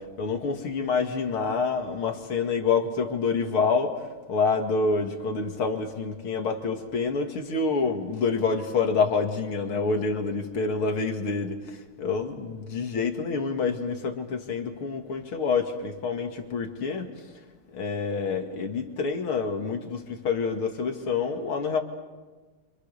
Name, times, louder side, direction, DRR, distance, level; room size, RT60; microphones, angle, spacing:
voice 1, 0.0-17.1 17.7-21.8, left 4 dB, 75° left, 4 dB, 3.0 m, -27 dB
29.5 x 27.5 x 6.8 m, 1.3 s
omnidirectional pair, 2.4 m